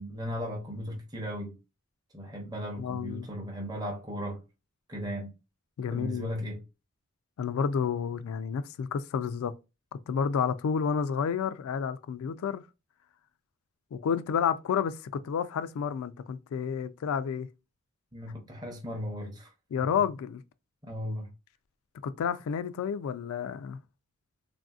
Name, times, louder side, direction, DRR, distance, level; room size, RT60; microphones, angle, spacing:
voice 1, 0.0-1.6 2.1-4.4 4.9-5.4 5.9-6.6 18.1-19.5 20.8-21.3, equal, 20° right, 0.6 m, -36 dB
voice 2, 2.8-3.3 5.8-6.3 7.4-9.5 9.9-12.6 13.9-17.5 19.7-20.4 22.0-23.8, left 7 dB, 85° left, 0.3 m, -30 dB
3.4 x 2.5 x 2.3 m
head